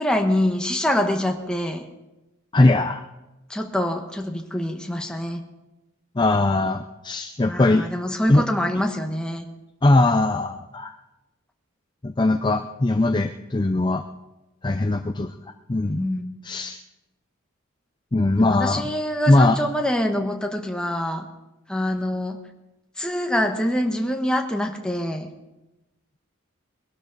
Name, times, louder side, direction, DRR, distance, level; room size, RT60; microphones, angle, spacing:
voice 1, 0.0-1.9 3.5-5.4 7.4-9.4 15.9-16.3 18.5-21.3 21.7-22.4 23.0-25.3, left 1 dB, 5° left, 3 dB, 1.2 m, -25 dB
voice 2, 2.5-3.0 6.2-7.9 8.3-8.4 9.8-10.9 12.0-14.0 14.6-15.3 15.7-16.0 16.4-16.8 18.1-18.8 19.3-19.6, left 2 dB, 20° left, 7 dB, 0.4 m, -20 dB
21.5 x 12.0 x 4.0 m, 1.0 s
head